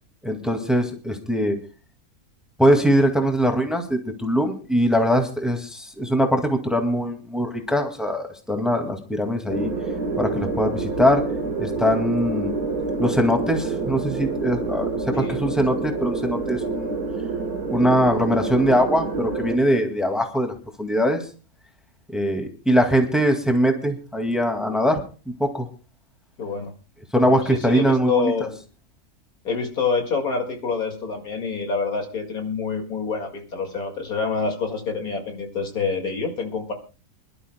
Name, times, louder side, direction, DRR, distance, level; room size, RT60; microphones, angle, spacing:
voice 1, 0.2-1.6 2.6-9.7 10.2-11.2 11.6-12.5 13.0-17.0 17.7-21.2 22.1-25.0 25.4-25.7 27.1-28.3, equal, ahead, 3 dB, 2.0 m, -22 dB
sound 1, 9.5-19.6, right 4 dB, 90° right, 2.2 m, -27 dB
voice 2, 15.1-15.5 26.4-26.7 27.1-28.6 29.4-36.7, left 4 dB, 80° left, 4 dB, 2.7 m, -27 dB
27.0 x 12.0 x 2.2 m, 0.34 s
omnidirectional pair, 1.5 m